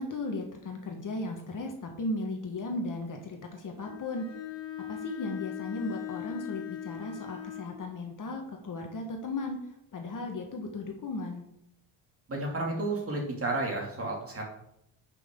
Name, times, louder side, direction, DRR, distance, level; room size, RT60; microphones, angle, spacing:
voice 1, 0.0-4.3 4.9-9.6 9.9-11.4, left 2 dB, 40° left, 3 dB, 1.4 m, -36 dB
Bowed string instrument, 3.8-7.8, left 11 dB, 65° left, 2.0 m, -40 dB
voice 2, 12.3-14.4, right 2 dB, 30° right, -1 dB, 2.4 m, -32 dB
9.7 x 6.1 x 3.7 m, 0.77 s
cardioid pair, 140°, 48 cm